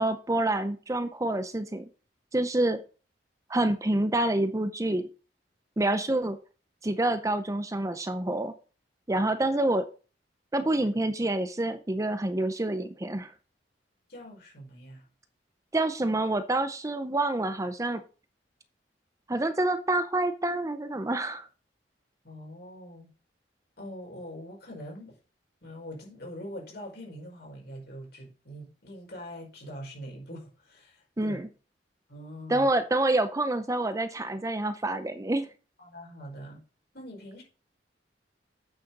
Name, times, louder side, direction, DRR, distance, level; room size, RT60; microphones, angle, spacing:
voice 1, 0.0-1.9 2.3-2.8 3.5-5.1 5.8-6.4 6.8-8.5 9.1-9.9 10.5-13.3 15.7-18.0 19.3-21.5 31.2-31.5 32.5-35.5, right 2 dB, 20° right, 10 dB, 0.6 m, -27 dB
voice 2, 14.1-15.0 22.2-23.1 23.8-25.2 25.6-31.4 32.1-32.7 35.8-36.6 36.9-37.4, equal, 60° left, -1 dB, 5.0 m, -43 dB
8.6 x 6.4 x 5.3 m, 0.37 s
head